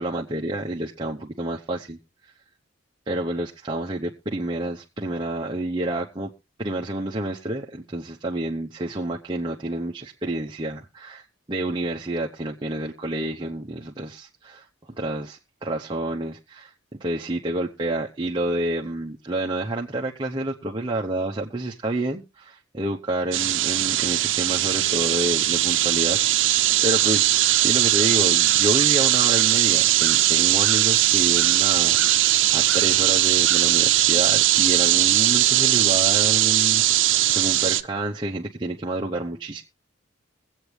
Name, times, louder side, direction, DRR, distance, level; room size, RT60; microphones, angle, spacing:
voice 1, 0.0-2.0 3.1-6.3 6.6-14.7 15.0-16.7 17.0-39.6, right 1 dB, 25° right, 0.8 m, -29 dB
sound 1, 23.3-37.8, right 14 dB, 70° right, 0.6 m, -19 dB
22.5 x 8.2 x 3.2 m
head